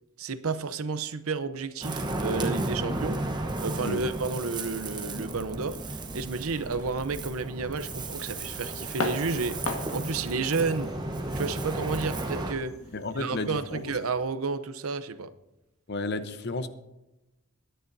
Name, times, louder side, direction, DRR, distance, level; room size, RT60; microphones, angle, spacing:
voice 1, 0.2-3.2 3.6-10.9 11.3-12.7 13.2-15.3, right 4 dB, 80° right, 12 dB, 0.7 m, -31 dB
Ocean, 1.8-12.5, right 2 dB, 20° right, 1.0 m, -34 dB
sound 1, 8.8-14.1, left 2 dB, 85° left, 1.6 m, -39 dB
voice 2, 12.9-13.9 15.9-16.7, left 2 dB, 50° left, 10 dB, 0.8 m, -33 dB
22.0 x 10.0 x 2.7 m, 0.96 s
head